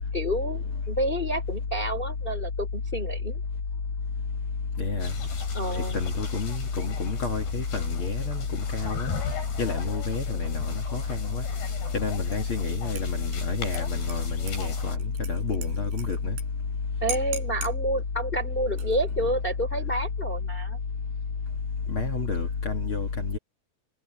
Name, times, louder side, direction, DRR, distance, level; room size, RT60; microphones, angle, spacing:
voice 1, 0.1-3.4 5.5-6.0 17.0-20.8, right 1 dB, 15° left, 3.6 m, -29 dB
voice 2, 4.8-5.1 5.9-8.4 8.7-9.1 9.6-11.4 11.9-15.0 15.3-16.3 21.9-23.4, left 4 dB, 45° left, 1.9 m, -28 dB
sound 1, 5.0-15.0, left 5 dB, 80° left, 8.4 m, -39 dB
Dishes pots and pans / Liquid, 12.3-12.6 13.0-16.4 16.7-16.8 17.1-17.8 18.6-19.1, equal, 75° right, 5.8 m, -42 dB
omnidirectional pair, 4.7 m